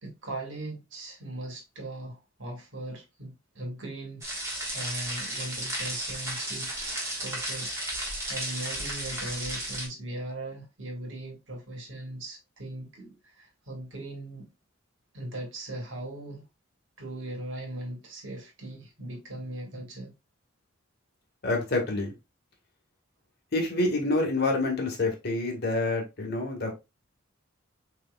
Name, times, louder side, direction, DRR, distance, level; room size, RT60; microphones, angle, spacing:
voice 1, 0.0-14.5 15.1-16.4 17.0-20.1, right 1 dB, 65° right, 1.5 m, -39 dB
sound 1, 4.2-9.9, right 1 dB, 15° right, 1.3 m, -34 dB
voice 2, 21.4-22.1 23.5-26.8, left 2 dB, 50° left, 1.5 m, -27 dB
6.4 x 3.0 x 2.2 m
head